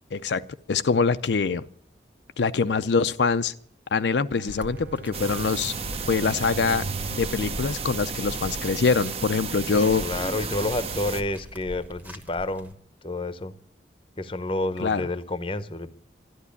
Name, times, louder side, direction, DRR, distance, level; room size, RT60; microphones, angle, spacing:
voice 1, 0.1-1.7 2.4-3.5 3.9-5.7 6.1-10.0 14.8-15.1, left 5 dB, 80° left, 11 dB, 0.5 m, -24 dB
Bowed string instrument, 4.3-8.7, right 5 dB, 70° right, 0.5 m, -43 dB
sound 1, 4.5-12.7, equal, 10° right, 1.1 m, -42 dB
sound 2, 5.1-11.2, right 5 dB, 35° right, 0.9 m, -33 dB
voice 2, 9.7-12.7 13.0-13.5 14.2-16.0, left 2 dB, 30° left, 14 dB, 0.8 m, -29 dB
12.5 x 11.0 x 8.3 m, 0.62 s
head